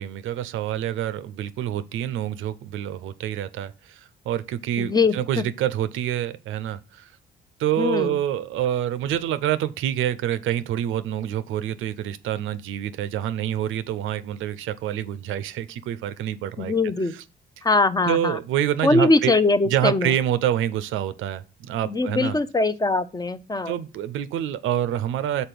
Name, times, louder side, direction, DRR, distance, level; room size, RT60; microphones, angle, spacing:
voice 1, 0.0-7.1 7.6-16.7 17.1-17.2 18.1-19.3 19.6-22.4 23.7-25.5, right 11 dB, 80° right, 0.5 m, -27 dB
voice 2, 4.8-5.4 7.8-8.2 16.6-17.1 17.6-18.4 18.8-20.1 21.9-23.7, left 3 dB, 20° left, 0.5 m, -22 dB
5.3 x 4.1 x 5.9 m
cardioid pair, 90°, 20 cm